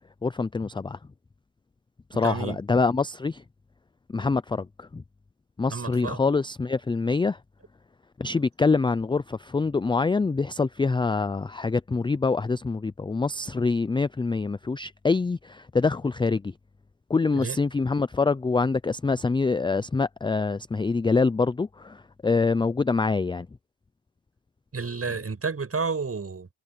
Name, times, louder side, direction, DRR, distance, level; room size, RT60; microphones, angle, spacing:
voice 1, 0.2-1.0 2.1-3.4 4.1-5.0 5.6-7.4 8.2-16.4 17.1-22.0 22.2-23.5, left 4 dB, 10° left, 0.4 m, -25 dB
voice 2, 2.2-2.6 5.7-6.2 17.3-17.6 24.7-26.5, right 4 dB, 30° right, 7.8 m, -30 dB
cardioid pair, 95°, 46 cm